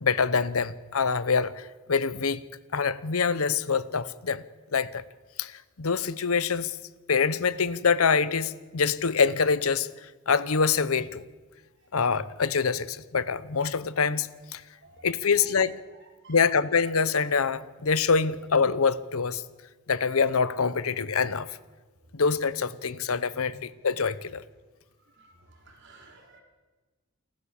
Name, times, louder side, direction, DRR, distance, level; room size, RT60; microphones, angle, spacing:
voice 1, 0.0-2.4 2.7-4.4 4.7-5.0 5.4-6.8 7.1-9.9 10.3-11.2 11.9-14.6 15.0-15.7 16.3-19.4 19.9-21.6 22.1-24.4, left 5 dB, 85° left, 16 dB, 0.8 m, -25 dB
voice 2, 14.8-16.5 23.3-23.6 25.7-26.4, right 2 dB, 55° right, 1 dB, 4.2 m, -53 dB
28.5 x 13.5 x 7.1 m, 1.3 s
head